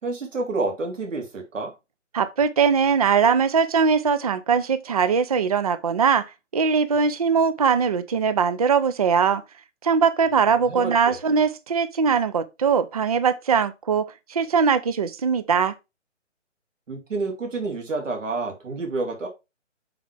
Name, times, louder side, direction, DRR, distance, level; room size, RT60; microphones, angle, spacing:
voice 1, 0.0-1.7 10.5-11.2 16.9-19.3, right 3 dB, 85° right, 3.1 m, -29 dB
voice 2, 2.1-9.4 9.8-15.7, right 6 dB, 30° right, 0.4 m, -21 dB
7.5 x 4.2 x 3.3 m
hypercardioid pair, 160°, 37 cm